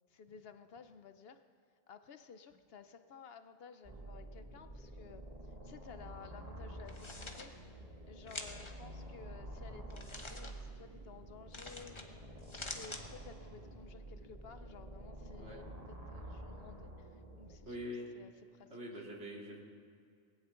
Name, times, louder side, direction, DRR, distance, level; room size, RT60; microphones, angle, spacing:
voice 1, 0.1-1.4 1.9-7.5 8.1-12.3 12.5-17.8 18.1-19.0, left 6 dB, 60° left, 10 dB, 0.8 m, -55 dB
sound 1, 3.8-17.6, right 1 dB, 35° right, 1.6 m, -49 dB
sound 2, 6.8-7.4 8.3-8.7 9.9-10.5 11.5-12.0 12.4-13.0, left 2 dB, 25° left, 1.1 m, -46 dB
voice 2, 17.6-18.1 18.7-19.6, equal, 70° right, -2 dB, 2.7 m, -44 dB
19.5 x 16.5 x 3.8 m, 2.3 s
omnidirectional pair, 1.2 m